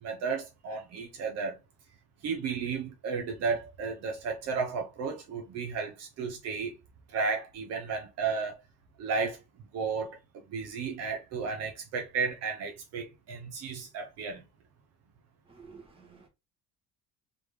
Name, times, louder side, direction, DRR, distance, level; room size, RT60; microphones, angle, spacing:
voice 1, 0.0-1.6 2.2-6.7 7.1-8.6 9.0-9.4 9.7-10.2 10.5-14.4, right 5 dB, 55° right, 0.9 m, -33 dB
voice 2, 15.5-16.3, right 5 dB, 20° right, 1.3 m, -52 dB
3.8 x 3.5 x 3.1 m
cardioid pair, 165°, 31 cm